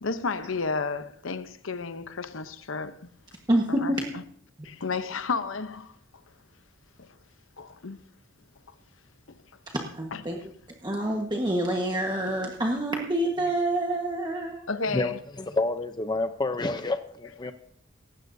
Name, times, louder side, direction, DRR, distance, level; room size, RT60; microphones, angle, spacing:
voice 1, 0.0-3.1 3.7-4.2 4.6-5.9 7.0-7.2 7.6-8.0 8.7-8.8 9.3-9.4 10.1-10.5 14.7-15.2, left 4 dB, 85° left, 0.8 m, -32 dB
voice 2, 3.5-4.0 9.9-10.4 10.8-14.6, right 1 dB, 20° right, 1.4 m, -27 dB
voice 3, 14.9-17.5, left 2 dB, 20° left, 0.6 m, -29 dB
18.0 x 16.0 x 2.7 m
head